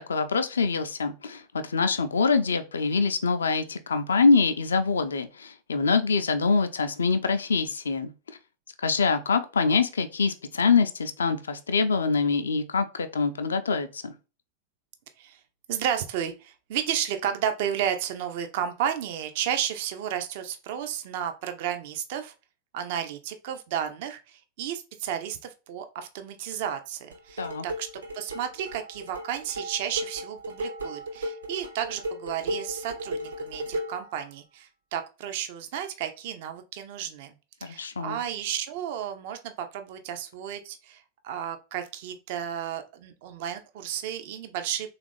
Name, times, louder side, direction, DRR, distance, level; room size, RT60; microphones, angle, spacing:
voice 1, 0.0-8.1 8.8-14.1 27.4-27.6 37.6-38.2, left 4 dB, 70° left, 0.4 m, -25 dB
voice 2, 15.7-22.3 22.7-27.9 28.1-37.4 37.6-45.0, right 9 dB, 50° right, 0.4 m, -32 dB
sound 1, 27.1-34.1, right 1 dB, 80° right, 1.0 m, -35 dB
3.5 x 2.4 x 3.2 m
figure-of-eight pair, 90°, 0 cm